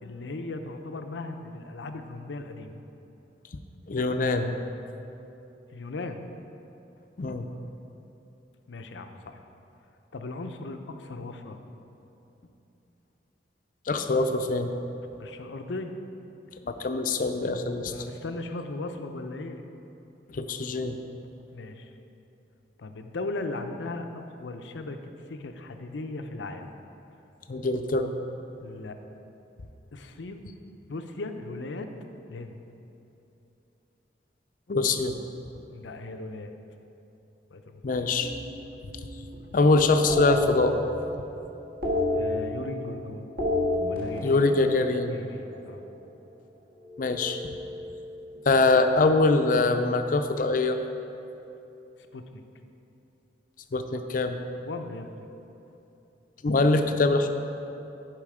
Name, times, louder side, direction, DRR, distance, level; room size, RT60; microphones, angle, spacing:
voice 1, 0.0-2.8 5.7-6.2 8.7-9.4 10.1-11.6 15.2-16.0 17.9-19.6 21.5-21.9 22.8-25.0 25.3-26.7 28.6-29.0 29.9-30.4 30.9-31.9 32.3-32.6 35.7-36.5 37.5-38.0 42.1-43.3 43.9-44.5 45.1-45.8 52.1-52.4 54.7-55.3, left 2 dB, 90° left, 6 dB, 0.6 m, -37 dB
voice 2, 3.9-4.5 7.2-7.5 13.9-14.7 16.6-17.9 20.3-21.0 27.5-28.1 34.7-35.1 37.8-38.3 39.5-40.8 44.2-45.2 47.0-47.5 48.5-50.8 53.7-54.4 56.4-57.3, left 3 dB, 50° left, 7 dB, 0.5 m, -23 dB
sound 1, 38.2-39.5 40.1-41.3 41.5-43.0 43.2-45.6 46.8-48.6, left 2 dB, 55° right, 1.8 m, -31 dB
10.5 x 5.0 x 4.9 m, 2.9 s
head